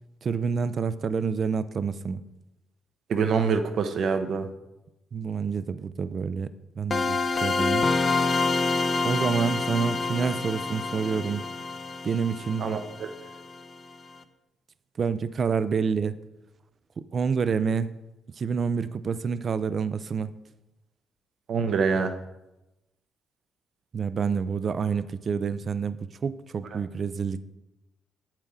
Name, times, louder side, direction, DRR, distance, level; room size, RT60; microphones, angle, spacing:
voice 1, 0.2-2.2 5.1-6.5 6.8-7.9 9.0-11.4 12.0-12.7 15.0-16.2 17.1-17.9 18.4-20.3 23.9-26.0 26.2-27.4, right 6 dB, 45° right, 14 dB, 0.4 m, -28 dB
voice 2, 3.1-4.5 12.6-13.1 21.5-22.1 26.7-26.8, right 5 dB, 65° right, 8 dB, 0.8 m, -25 dB
sound 1, 6.9-13.6, left 3 dB, 35° left, 0.6 m, -27 dB
8.4 x 7.4 x 3.7 m, 0.96 s
cardioid pair, 90°, 0 cm